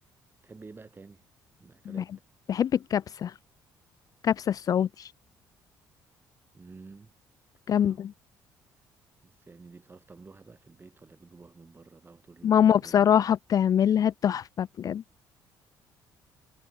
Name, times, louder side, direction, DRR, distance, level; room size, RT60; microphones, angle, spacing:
voice 1, 0.4-1.3 1.6-2.1 6.5-7.1 7.7-8.0 9.2-13.3, right 4 dB, 25° right, 4.3 m, -50 dB
voice 2, 2.5-3.3 4.2-5.1 7.7-8.1 12.4-15.0, left 9 dB, 45° left, 0.4 m, -24 dB
supercardioid pair, 80°, 8 cm